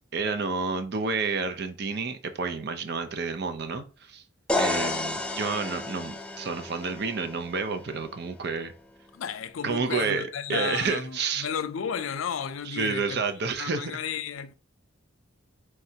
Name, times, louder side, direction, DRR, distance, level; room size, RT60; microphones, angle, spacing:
voice 1, 0.1-4.2 4.6-8.7 9.6-11.5 12.7-13.9, right 4 dB, 55° right, 0.6 m, -30 dB
sound 1, 4.5-8.3, left 2 dB, 5° left, 0.4 m, -32 dB
voice 2, 9.1-13.2 13.6-14.6, left 7 dB, 80° left, 0.4 m, -33 dB
4.7 x 3.2 x 2.8 m
head